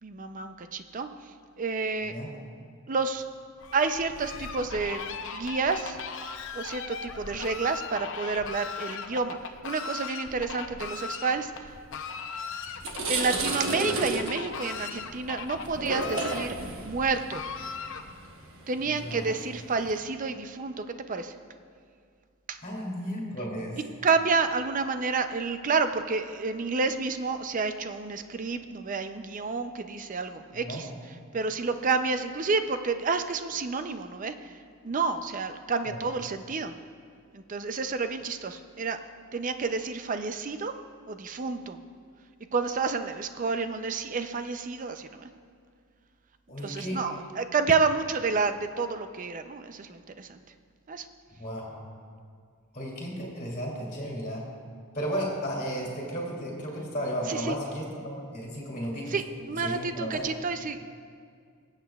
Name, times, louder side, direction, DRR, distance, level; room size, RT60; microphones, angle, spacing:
voice 1, 0.0-2.1 2.9-3.2 3.7-6.0 6.5-11.7 13.1-16.6 16.8-17.5 18.7-21.3 22.5-22.6 24.0-30.9 31.3-34.5 34.8-36.7 37.3-39.0 39.3-40.7 41.1-41.8 42.5-45.3 46.6-50.4 50.9-51.1 57.3-57.6 59.1-60.8, right 4 dB, 35° right, 9 dB, 0.5 m, -30 dB
Fowl, 3.6-18.3, left 5 dB, 60° left, 0.6 m, -39 dB
sound 1, 12.2-12.3 12.7-20.0, right 3 dB, 65° right, 1.1 m, -33 dB
voice 2, 19.0-19.3 22.6-23.8 30.5-30.8 35.9-36.0 46.5-47.0 51.4-51.9 52.7-54.4 54.9-59.2 59.6-60.3, equal, 35° left, -3 dB, 2.5 m, -34 dB
22.0 x 8.1 x 2.3 m, 2.2 s
head